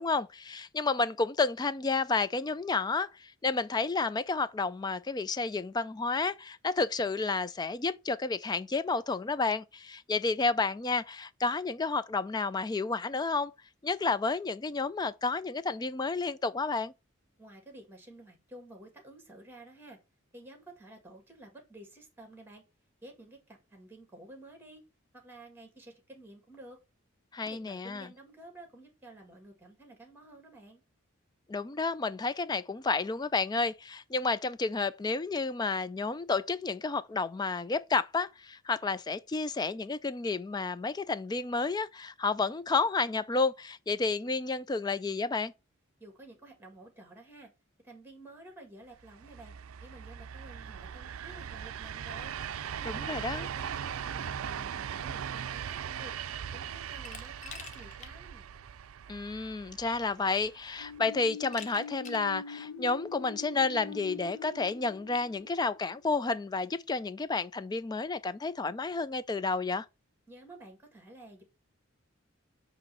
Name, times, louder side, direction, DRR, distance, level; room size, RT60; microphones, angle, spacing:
voice 1, 0.0-13.5 13.8-16.9 27.3-28.1 31.5-45.5 52.9-53.5 59.1-69.9, left 4 dB, 20° left, 0.3 m, -31 dB
voice 2, 17.4-20.0 20.3-22.6 23.0-24.8 25.1-26.8 27.4-30.8 46.0-47.5 47.8-49.5 49.8-52.3 52.8-56.1 56.5-58.5 70.3-71.4, right 1 dB, 10° right, 1.9 m, -52 dB
sound 1, 49.0-61.0, right 8 dB, 85° right, 0.4 m, -40 dB
Glass, 57.0-58.1 58.5-58.6 59.8-59.9 60.3-60.7 61.5-62.3, left 5 dB, 35° left, 0.9 m, -47 dB
sound 2, 60.8-66.5, left 6 dB, 75° left, 0.9 m, -44 dB
7.8 x 3.1 x 5.6 m
head